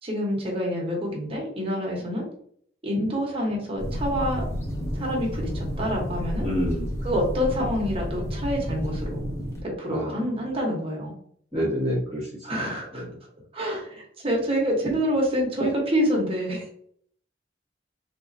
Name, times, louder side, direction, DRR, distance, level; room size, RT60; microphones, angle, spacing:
voice 1, 0.0-2.2 2.8-4.5 4.9-6.5 7.0-9.2 9.6-11.1 12.4-13.0 13.5-16.7, equal, 30° right, -1 dB, 1.1 m, -27 dB
sound 1, 3.8-9.6, equal, 15° left, 0.7 m, -31 dB
voice 2, 6.4-6.8 9.9-10.1 11.5-12.3 12.9-13.0, equal, 5° right, -12 dB, 1.2 m, -27 dB
3.5 x 3.1 x 2.6 m, 0.63 s
head